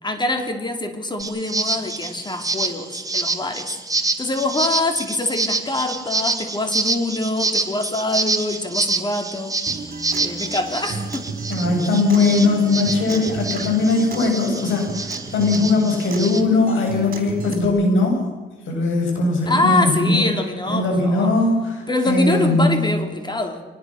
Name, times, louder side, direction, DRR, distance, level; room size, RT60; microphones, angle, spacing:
voice 1, 0.0-3.7 4.2-9.6 10.2-11.3 19.5-21.3 21.9-23.6, left 2 dB, 20° left, 6 dB, 3.2 m, -24 dB
sound 1, 1.2-16.4, right 3 dB, 15° right, 2.2 m, -27 dB
Acoustic guitar, 9.7-17.7, right 4 dB, 45° right, 4.4 m, -34 dB
voice 2, 11.5-18.2 18.7-20.2 20.7-22.9, left 3 dB, 75° left, 1 dB, 7.8 m, -19 dB
24.5 x 19.5 x 6.5 m, 1.3 s
cardioid pair, 90°, 20 cm